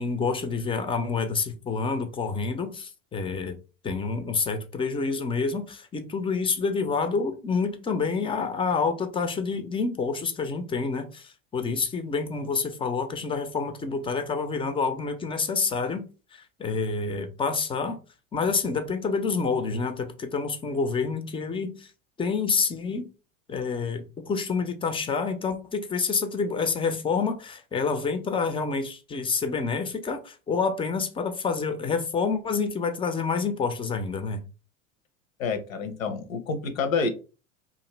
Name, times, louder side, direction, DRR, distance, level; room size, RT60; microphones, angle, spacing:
voice 1, 0.0-3.5 3.8-16.1 16.3-18.0 18.3-21.9 22.2-23.1 23.5-34.4, left 4 dB, 15° left, 0.4 m, -28 dB
voice 2, 35.4-37.1, left 4 dB, 80° left, 0.7 m, -28 dB
2.5 x 2.5 x 3.0 m
hypercardioid pair, 80°, 40 cm